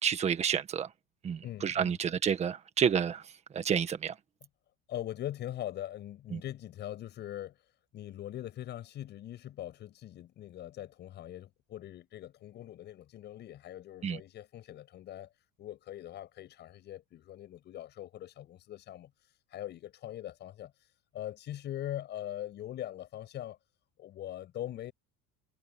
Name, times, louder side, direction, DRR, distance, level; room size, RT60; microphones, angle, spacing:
voice 1, 0.0-0.9 1.2-3.2 3.5-4.1 14.0-14.2, right 7 dB, 20° right, 1.5 m, -29 dB
voice 2, 1.4-2.0 4.9-15.3 15.6-23.6 24.0-24.9, left 12 dB, 35° left, 7.5 m, -42 dB
cardioid pair, 175°, 30 cm